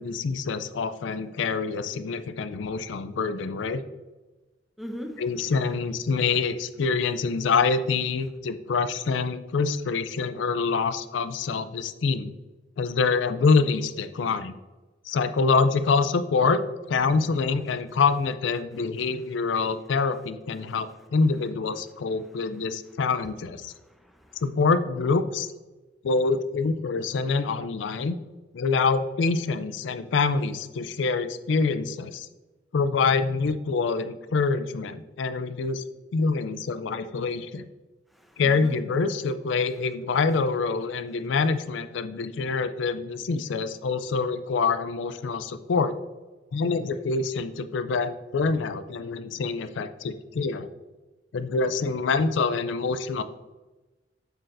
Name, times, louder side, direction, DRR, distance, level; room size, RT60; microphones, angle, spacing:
voice 1, 0.0-3.8 5.2-12.3 12.8-14.5 15.1-16.6 16.9-23.7 24.4-25.5 26.0-28.2 28.5-32.3 32.7-35.8 36.1-37.7 38.4-45.9 46.5-50.7 51.3-53.2, left 4 dB, 75° left, 12 dB, 0.4 m, -26 dB
voice 2, 4.8-5.2 20.6-20.8 22.2-22.3 23.7-24.4 38.1-38.8, equal, ahead, 3 dB, 0.7 m, -40 dB
7.9 x 6.4 x 2.6 m, 1.2 s
head